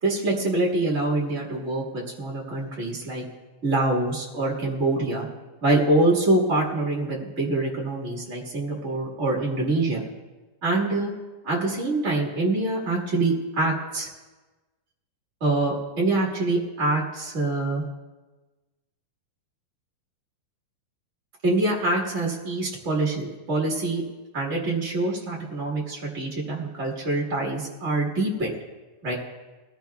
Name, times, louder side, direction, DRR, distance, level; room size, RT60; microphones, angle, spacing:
voice 1, 0.0-3.2 3.6-5.3 5.6-10.0 10.6-11.1 11.4-14.1 15.4-17.8 21.4-24.0 24.3-28.5 29.0-29.1, right 2 dB, 40° right, -3 dB, 1.0 m, -25 dB
23.0 x 14.5 x 2.3 m, 1.2 s
omnidirectional pair, 4.0 m